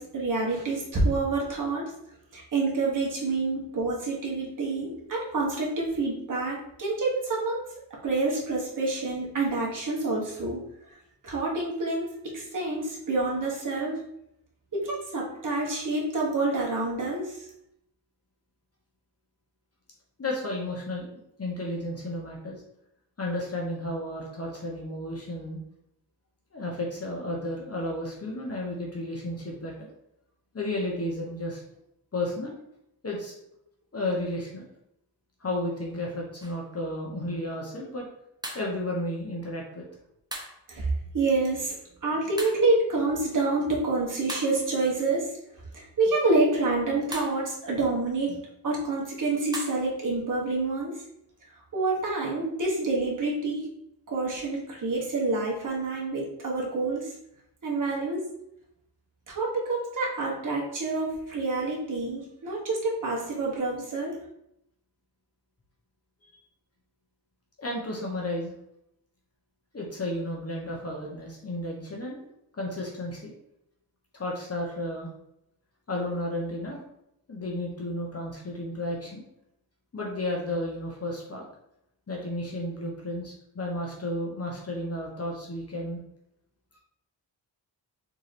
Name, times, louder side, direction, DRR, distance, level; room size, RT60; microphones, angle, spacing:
voice 1, 0.0-1.8 2.3-7.6 8.0-10.6 11.2-14.0 14.7-17.4 40.7-41.8 42.0-45.3 45.7-48.4 48.6-51.0 51.7-53.7 54.1-57.1 57.6-58.3 59.3-64.2, right 3 dB, 50° right, -4 dB, 1.5 m, -27 dB
voice 2, 20.2-21.1 21.4-22.6 23.2-25.6 26.5-29.9 30.5-31.6 32.1-32.5 33.0-33.4 33.9-34.6 35.4-38.0 38.5-39.8 67.6-68.5 69.7-72.2 72.6-73.3 74.1-75.1 75.9-76.8 77.3-79.2 79.9-81.4 82.1-86.0, left 1 dB, 35° left, -2 dB, 1.2 m, -32 dB
sound 1, 36.4-36.6 38.4-38.7 40.3-40.6 42.4-42.8 44.3-44.8 47.1-47.4 49.5-49.8, right 1 dB, 10° right, 0.9 m, -38 dB
3.8 x 3.7 x 3.3 m, 0.78 s
cardioid pair, 75°, 41 cm